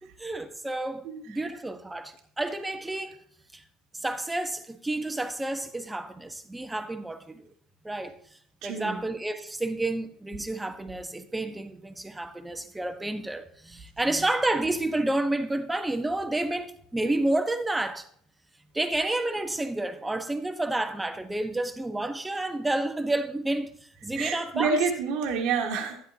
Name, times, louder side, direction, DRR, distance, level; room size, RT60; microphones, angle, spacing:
voice 1, 0.0-3.2 3.5-3.6 3.9-7.5 7.8-8.1 8.6-18.1 18.7-23.7 24.0-24.8, right 2 dB, 10° right, 1.3 m, -30 dB
voice 2, 8.6-9.0 24.2-26.0, right 5 dB, 70° right, 1.8 m, -28 dB
12.5 x 9.8 x 2.9 m
supercardioid pair, 90°, 0 cm